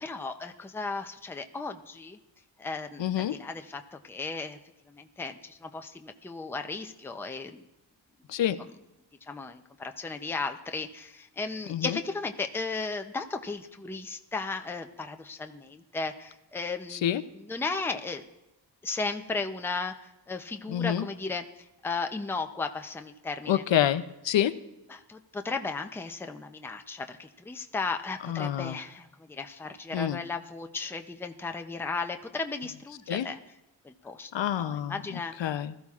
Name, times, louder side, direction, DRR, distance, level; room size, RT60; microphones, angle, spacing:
voice 1, 0.0-2.2 2.6-4.6 4.9-7.6 8.6-8.7 9.3-18.2 18.8-19.9 20.3-21.4 21.8-23.6 24.9-33.4 33.8-34.3 34.6-35.3, left 4 dB, 5° left, 6 dB, 0.5 m, -35 dB
voice 2, 3.0-3.3 8.3-8.6 11.7-12.0 16.9-17.2 20.7-21.1 23.5-24.5 28.3-28.8 29.9-30.2 33.1-33.3 34.3-35.7, left 11 dB, 75° left, 12 dB, 0.6 m, -27 dB
20.0 x 13.5 x 2.4 m, 0.95 s
wide cardioid pair, 170°, 45 cm